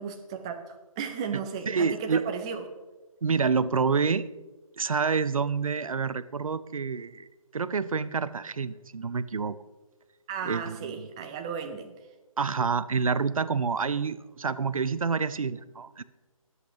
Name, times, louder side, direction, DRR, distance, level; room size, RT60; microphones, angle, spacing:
voice 1, 0.0-2.7 10.3-12.0, right 6 dB, 10° right, 5 dB, 0.4 m, -35 dB
voice 2, 1.7-2.2 3.2-4.3 4.8-7.3 7.5-9.6 10.4-11.1 12.4-16.0, right 5 dB, 70° right, 15 dB, 0.6 m, -28 dB
22.5 x 8.2 x 2.9 m, 1.2 s
figure-of-eight pair, 150°, 18 cm